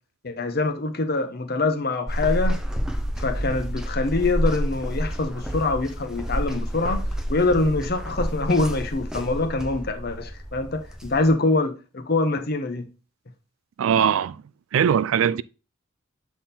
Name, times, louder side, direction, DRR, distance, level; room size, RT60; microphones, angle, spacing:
voice 1, 0.2-2.6 3.2-7.0 7.3-12.8, left 2 dB, 50° left, 0.8 m, -24 dB
sound 1, 2.1-11.3, equal, 5° right, 0.5 m, -29 dB
voice 2, 13.8-14.4 14.7-15.4, right 8 dB, 75° right, 0.3 m, -20 dB
7.4 x 3.6 x 4.1 m
head